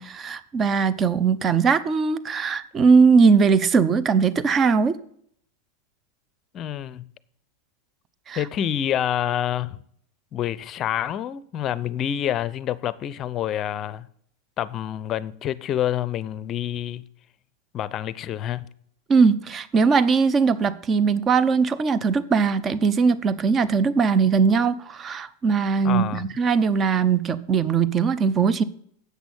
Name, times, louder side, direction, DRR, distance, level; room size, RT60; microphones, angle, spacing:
voice 1, 0.0-5.0 8.3-8.4 19.1-28.6, right 5 dB, 30° right, 0.7 m, -20 dB
voice 2, 6.5-7.0 8.4-9.8 10.3-14.1 14.6-17.0 17.7-18.7 25.8-26.3, left 10 dB, 35° left, 0.6 m, -27 dB
8.2 x 6.2 x 7.0 m
hypercardioid pair, 105°, 0 cm